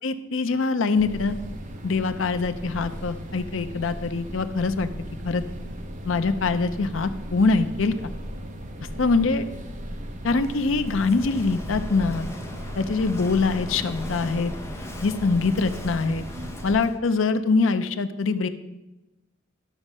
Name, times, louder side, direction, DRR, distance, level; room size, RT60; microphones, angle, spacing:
voice 1, 0.0-1.4 1.8-4.9 5.2-5.4 6.0-8.1 9.0-9.5 10.2-12.3 12.8-14.5 15.0-16.2 16.6-18.5, left 4 dB, 70° left, 10 dB, 0.6 m, -23 dB
sound 1, 1.0-16.8, equal, 40° right, 1.0 m, -37 dB
Walk footsteps / Wind / Waves surf, 10.4-17.0, left 1 dB, 15° left, 0.9 m, -39 dB
12.5 x 7.1 x 5.4 m, 1.0 s
head